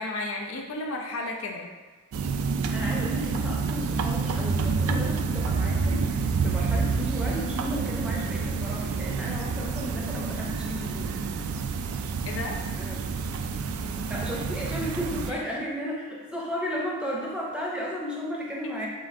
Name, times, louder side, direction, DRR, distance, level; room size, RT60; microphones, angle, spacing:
voice 1, 0.0-1.7 12.3-12.6 15.3-15.4, left 2 dB, 65° left, 1 dB, 0.4 m, -33 dB
sound 1, 2.1-15.3, right 4 dB, 85° right, 0.3 m, -28 dB
voice 2, 2.7-11.1 12.8-13.1 14.1-18.9, equal, 5° right, -4 dB, 0.6 m, -34 dB
7.2 x 2.5 x 2.5 m, 1.3 s
head